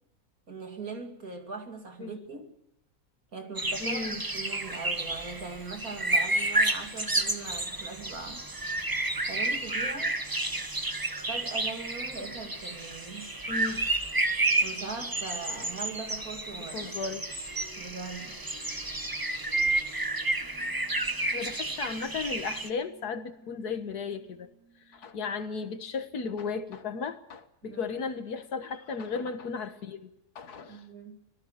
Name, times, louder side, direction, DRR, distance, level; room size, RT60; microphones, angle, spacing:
voice 1, 0.5-2.5 3.3-8.5 9.3-10.2 11.3-13.4 14.6-16.9 17.8-18.4 27.6-27.9 30.7-31.2, right 4 dB, 65° right, 4 dB, 3.1 m, -40 dB
sound 1, 3.6-22.7, right 2 dB, 15° right, 1.2 m, -31 dB
voice 2, 3.8-4.2 13.5-13.9 16.6-17.2 21.3-24.5 24.9-30.1 30.4-30.8, left 5 dB, 90° left, 9 dB, 2.0 m, -35 dB
sound 2, 7.5-26.0, equal, 70° left, 7.5 m, -58 dB
25.0 x 17.5 x 6.6 m, 0.85 s
omnidirectional pair, 1.6 m